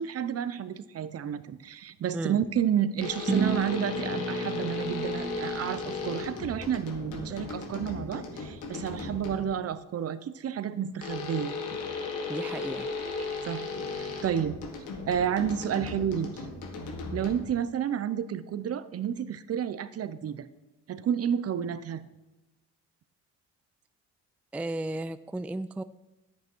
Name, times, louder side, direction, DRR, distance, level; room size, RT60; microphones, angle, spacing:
voice 1, 0.0-11.8 13.4-13.7 13.9-14.6 15.1-16.4 17.1-20.5 20.9-22.0, right 9 dB, 50° right, 14 dB, 0.7 m, -31 dB
sound 1, 3.0-9.6 11.0-17.7, left 4 dB, 90° left, 1.7 m, -36 dB
sound 2, 3.3-7.1, right 4 dB, 25° right, 2.0 m, -34 dB
voice 2, 12.3-12.9 24.5-25.8, right 2 dB, 5° right, 12 dB, 0.3 m, -34 dB
11.0 x 8.5 x 4.5 m, 1.1 s
cardioid pair, 90°, 30 cm